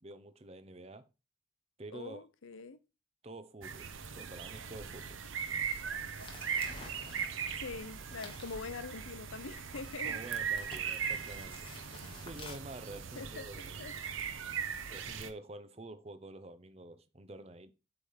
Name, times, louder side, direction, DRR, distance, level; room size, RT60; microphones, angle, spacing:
voice 1, 0.0-1.1 1.8-2.2 3.2-3.9 4.1-5.2 10.0-11.7 12.2-13.9 14.8-17.7, right 2 dB, 30° right, 0.7 m, -48 dB
voice 2, 1.9-2.8 7.6-10.2 13.2-13.5 13.8-13.9, left 4 dB, 85° left, 0.7 m, -44 dB
sound 1, 3.6-15.3, right 7 dB, 80° right, 0.8 m, -39 dB
sound 2, 6.1-12.6, left 2 dB, 25° left, 1.3 m, -52 dB
8.2 x 3.4 x 5.5 m
head